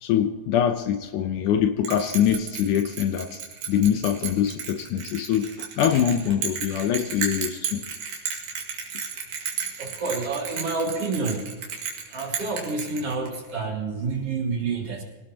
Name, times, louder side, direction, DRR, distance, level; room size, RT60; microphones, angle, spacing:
voice 1, 0.0-3.4 3.7-7.8, left 9 dB, 75° left, 7 dB, 2.1 m, -24 dB
Bell, 1.8-13.5, right 6 dB, 70° right, 3.7 m, -33 dB
voice 2, 9.8-11.5 12.1-15.0, right 4 dB, 50° right, 1 dB, 2.7 m, -28 dB
24.5 x 17.5 x 2.9 m, 1.3 s
omnidirectional pair, 3.9 m